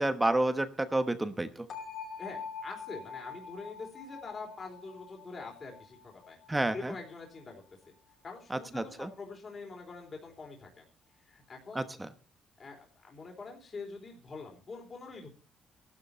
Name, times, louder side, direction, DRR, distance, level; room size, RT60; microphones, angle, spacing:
voice 1, 0.0-1.7 6.5-6.9 8.5-9.1 11.7-12.1, right 1 dB, 10° right, 10 dB, 1.1 m, -30 dB
sound 1, 1.7-7.5, left 6 dB, 50° left, 5.4 m, -45 dB
voice 2, 2.2-6.4 6.7-7.6 8.2-10.8 11.2-11.8 12.6-15.3, left 4 dB, 30° left, 1 dB, 4.0 m, -45 dB
15.5 x 12.5 x 4.3 m, 0.35 s
cardioid pair, 140°, 0 cm